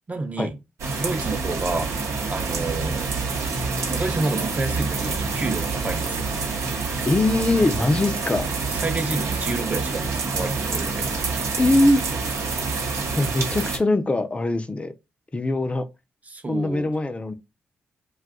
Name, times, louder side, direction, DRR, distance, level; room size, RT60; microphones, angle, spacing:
voice 1, 0.1-0.6 1.0-2.0 2.3-3.2 3.9-6.3 8.7-11.1 16.3-16.9, right 3 dB, 30° right, 0.7 m, -29 dB
sound 1, 0.8-13.8, right 4 dB, 75° right, 0.8 m, -27 dB
voice 2, 7.1-8.5 11.6-12.0 13.2-14.9 15.3-15.8 16.5-17.3, left 2 dB, 25° left, 0.5 m, -21 dB
2.5 x 2.4 x 3.6 m
supercardioid pair, 55°, 5 cm